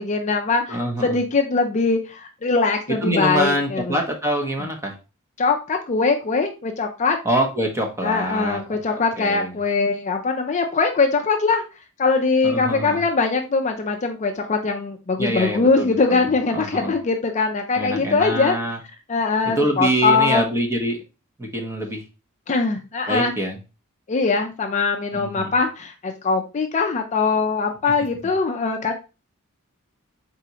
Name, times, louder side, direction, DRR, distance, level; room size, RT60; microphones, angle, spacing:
voice 1, 0.0-4.0 5.4-7.2 8.0-11.6 12.0-18.6 19.1-20.6 22.5-23.3 24.1-28.9, left 4 dB, 30° left, 3 dB, 0.4 m, -22 dB
voice 2, 0.7-1.2 3.0-4.9 7.2-8.8 9.2-9.5 12.4-13.0 15.2-16.9 17.7-18.8 19.4-21.0 21.4-22.0 23.1-23.6 25.1-25.5, right 1 dB, 10° right, 2 dB, 0.8 m, -25 dB
4.1 x 3.6 x 2.8 m, 0.30 s
head